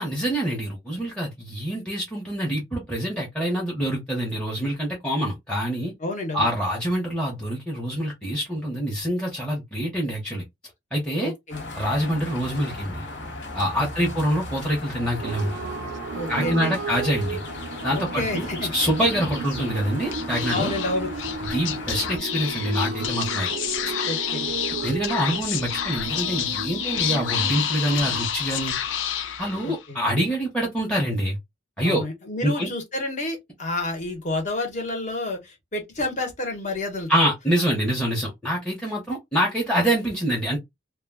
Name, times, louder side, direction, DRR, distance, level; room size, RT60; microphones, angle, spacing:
voice 1, 0.0-5.9 6.3-10.4 10.9-11.3 11.8-13.0 13.5-15.5 16.3-17.4 17.8-18.5 18.7-20.8 21.5-23.5 24.8-28.7 29.4-31.4 31.8-32.0 32.4-32.7 37.1-40.6, equal, 5° left, 0.7 m, -25 dB
voice 2, 6.0-6.5 11.2-11.6 13.8-14.1 16.1-16.7 17.9-18.9 20.5-21.1 23.9-24.6 29.6-30.0 31.8-37.1, left 2 dB, 40° left, 0.9 m, -30 dB
sound 1, 11.5-22.2, left 2 dB, 70° left, 1.0 m, -36 dB
sound 2, 15.2-28.3, right 5 dB, 85° right, 0.4 m, -34 dB
Speech / Whispering, 20.1-29.9, left 9 dB, 90° left, 0.5 m, -29 dB
2.2 x 2.1 x 3.4 m
head